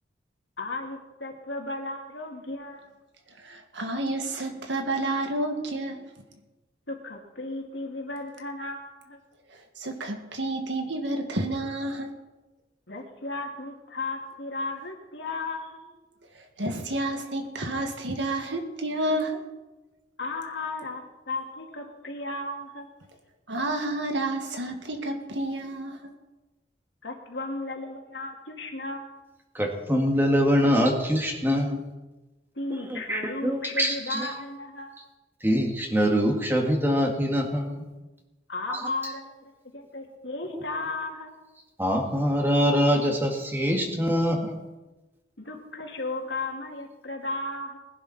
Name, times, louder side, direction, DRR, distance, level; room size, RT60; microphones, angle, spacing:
voice 1, 0.6-2.9 6.9-9.2 12.9-15.8 20.2-22.9 27.0-29.1 32.6-34.9 38.5-41.3 45.4-47.8, left 2 dB, 75° left, 1 dB, 2.4 m, -35 dB
voice 2, 3.4-6.0 9.8-12.1 16.6-19.4 23.5-26.1, right 1 dB, 80° right, 4 dB, 2.0 m, -30 dB
voice 3, 29.5-31.8 32.9-34.3 35.4-37.9 38.7-38.9 40.5-40.6 41.8-44.6, equal, 10° right, 1 dB, 2.0 m, -24 dB
20.0 x 11.5 x 4.3 m, 1.1 s
head